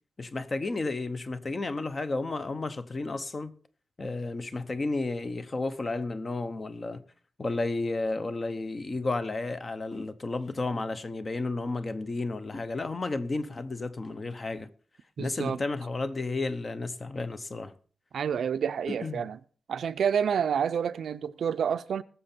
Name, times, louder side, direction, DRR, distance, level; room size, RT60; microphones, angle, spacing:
voice 1, 0.2-3.5 4.0-7.0 7.4-14.7 15.2-17.7 18.9-19.2, left 3 dB, 30° left, 0.8 m, -32 dB
voice 2, 15.2-15.6 18.1-19.4 19.7-22.0, right 7 dB, 85° right, 0.5 m, -28 dB
20.0 x 6.8 x 4.4 m
wide cardioid pair, 140°, 0 cm